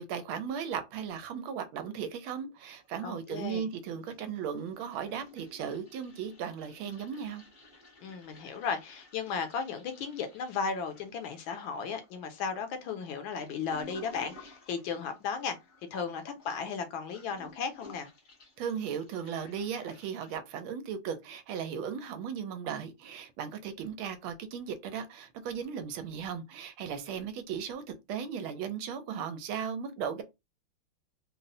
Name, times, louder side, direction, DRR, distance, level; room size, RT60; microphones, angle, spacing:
voice 1, 0.0-7.4 18.6-27.8 28.1-30.2, right 7 dB, 85° right, 1.4 m, -36 dB
Toilet flush, 2.8-3.6 3.9-20.4, left 1 dB, 60° left, 0.5 m, -55 dB
voice 2, 3.0-3.7 8.0-15.6 15.9-18.1, left 6 dB, 75° left, 1.4 m, -35 dB
3.9 x 2.0 x 2.6 m
omnidirectional pair, 2.3 m